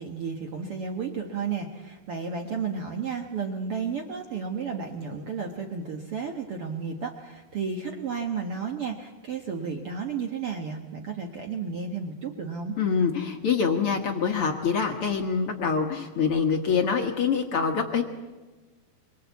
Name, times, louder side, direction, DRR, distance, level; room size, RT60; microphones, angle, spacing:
voice 1, 0.0-12.8, right 5 dB, 65° right, 3 dB, 1.4 m, -32 dB
voice 2, 12.8-18.0, left 6 dB, 65° left, 4 dB, 1.3 m, -25 dB
26.0 x 23.5 x 8.3 m, 1.3 s
omnidirectional pair, 4.7 m